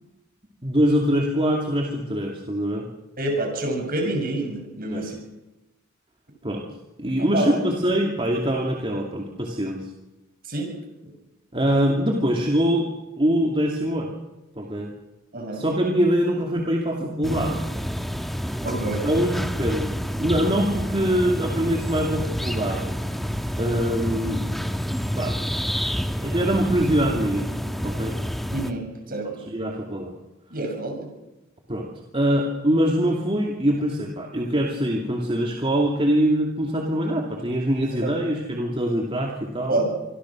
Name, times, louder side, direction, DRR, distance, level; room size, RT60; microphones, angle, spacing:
voice 1, 0.6-2.8 4.9-5.0 6.4-6.6 7.0-9.9 11.5-12.9 13.2-14.1 14.6-14.9 15.5-17.6 19.0-22.9 23.6-24.7 25.2-25.5 26.2-27.5 27.8-28.1 29.2-30.1 31.7-31.9 32.1-39.8, equal, 25° right, 0 dB, 2.5 m, -23 dB
voice 2, 3.2-5.2 7.3-7.5 10.5-10.7 15.3-15.6 18.6-19.1 28.5-29.3 30.5-31.1 39.7-39.9, right 2 dB, 45° right, 3 dB, 6.8 m, -27 dB
sound 1, 17.2-28.7, equal, ahead, 1.3 m, -28 dB
26.5 x 23.0 x 6.2 m, 1.0 s
head